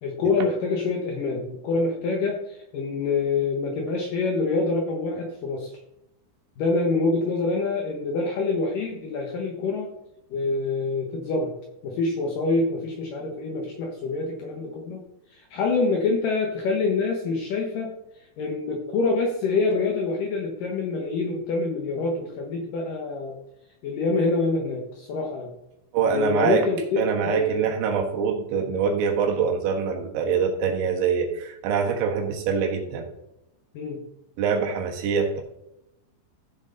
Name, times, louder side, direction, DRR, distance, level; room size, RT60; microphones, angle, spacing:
voice 1, 0.0-5.7 6.6-9.9 10.3-11.5 11.8-15.1 15.3-17.9 18.4-23.4 23.8-25.5 26.1-27.8 33.7-34.0, left 3 dB, 70° left, 1 dB, 2.2 m, -26 dB
voice 2, 25.9-26.7 27.0-33.1 34.4-35.4, right 6 dB, 80° right, 2 dB, 3.8 m, -24 dB
15.0 x 6.4 x 3.9 m, 0.87 s
omnidirectional pair, 5.3 m